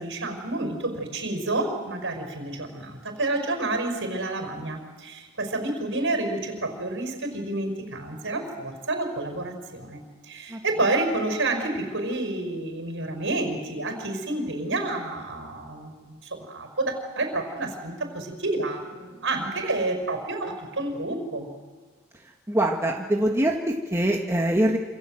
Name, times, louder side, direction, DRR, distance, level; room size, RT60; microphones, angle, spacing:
voice 1, 0.0-21.5, right 2 dB, 60° right, 5 dB, 5.6 m, -29 dB
voice 2, 22.5-24.8, right 1 dB, 10° right, 0 dB, 1.6 m, -23 dB
27.5 x 27.5 x 7.8 m, 1.4 s
head